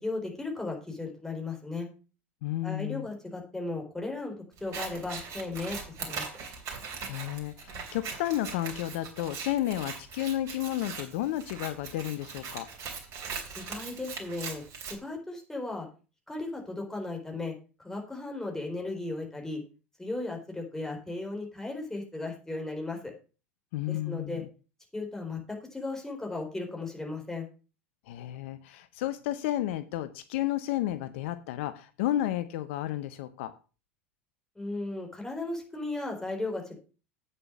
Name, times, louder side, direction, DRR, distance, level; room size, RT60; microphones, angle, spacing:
voice 1, 0.0-1.9 2.6-4.3 4.6-6.2 13.5-15.9 16.3-17.5 17.8-19.6 20.0-23.1 23.9-24.4 24.9-27.5 34.6-36.8, left 2 dB, 5° left, 1 dB, 4.1 m, -36 dB
voice 2, 2.4-3.1 7.1-12.7 23.7-24.5 28.1-33.5, left 13 dB, 65° left, 13 dB, 0.7 m, -32 dB
Scissors, 4.6-15.0, right 5 dB, 45° right, 3.3 m, -40 dB
8.9 x 6.8 x 5.9 m, 0.34 s
hypercardioid pair, 85°, 7 cm